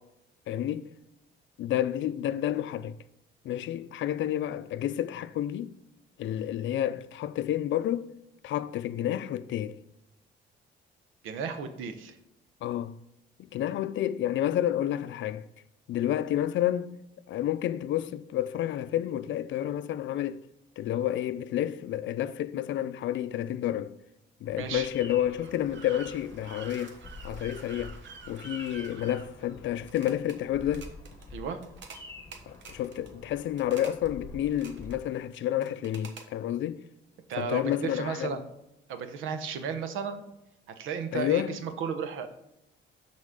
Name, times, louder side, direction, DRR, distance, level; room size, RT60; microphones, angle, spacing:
voice 1, 0.5-0.9 1.6-3.0 3.4-5.7 6.2-8.1 8.4-9.8 12.6-13.0 13.4-15.5 15.9-17.0 17.3-20.4 20.8-24.0 24.4-27.0 27.2-28.0 28.3-30.9 32.5-36.8 37.3-38.4 41.1-41.6, left 12 dB, 70° left, 0.5 m, -30 dB
voice 2, 11.2-12.2 24.6-24.9 31.3-31.6 37.3-38.5 38.9-40.2 40.7-42.3, right 6 dB, 90° right, 1.0 m, -34 dB
Bird vocalization bird call bird song, 24.4-35.0, left 2 dB, 15° left, 1.7 m, -48 dB
sound 1, 25.4-30.4 30.6-31.3 31.6-32.0 32.3-33.1 33.6-34.1 34.4-35.0 35.6-36.3, right 5 dB, 65° right, 1.2 m, -48 dB
12.5 x 4.3 x 3.7 m
cardioid pair, 90°, 20 cm